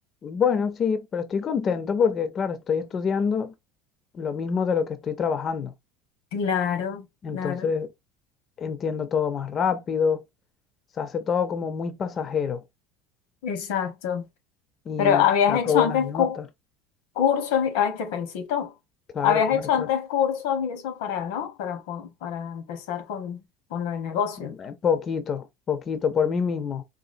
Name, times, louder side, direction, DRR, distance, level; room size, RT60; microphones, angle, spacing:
voice 1, 0.2-3.5 4.1-5.7 7.2-7.9 8.6-10.2 11.0-12.6 14.9-15.2 15.5-16.5 19.1-19.9 24.6-26.8, left 6 dB, 35° left, 0.4 m, -26 dB
voice 2, 6.3-7.1 7.3-7.7 13.4-14.3 15.0-16.4 17.2-18.7 19.2-23.4 23.7-24.6, left 8 dB, 85° left, 0.9 m, -25 dB
3.8 x 2.4 x 2.5 m
supercardioid pair, 125°, 0 cm